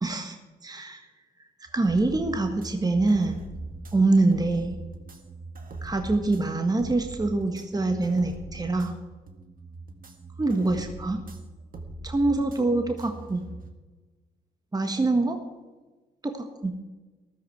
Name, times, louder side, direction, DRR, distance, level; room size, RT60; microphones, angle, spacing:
voice 1, 0.0-0.4 0.6-1.0 1.7-3.4 3.9-4.8 5.8-8.9 10.4-11.2 12.0-13.4 14.7-15.4 16.2-16.7, right 2 dB, 20° right, 5 dB, 1.6 m, -25 dB
sound 1, 1.7-13.7, right 2 dB, 45° right, 1.8 m, -41 dB
14.0 x 13.0 x 4.7 m, 1.2 s
hypercardioid pair, 45°, 21 cm